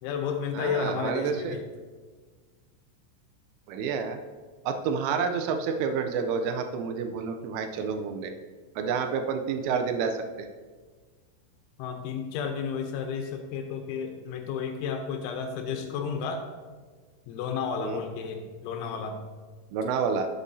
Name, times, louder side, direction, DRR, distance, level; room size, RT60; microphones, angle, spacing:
voice 1, 0.0-1.6 11.8-16.4 17.3-19.2, left 6 dB, 80° left, 5 dB, 3.0 m, -32 dB
voice 2, 0.6-1.6 3.7-4.2 4.7-8.3 8.8-10.5 17.8-18.0 19.7-20.3, right 6 dB, 80° right, 6 dB, 3.1 m, -29 dB
11.5 x 8.2 x 2.7 m, 1.5 s
omnidirectional pair, 5.7 m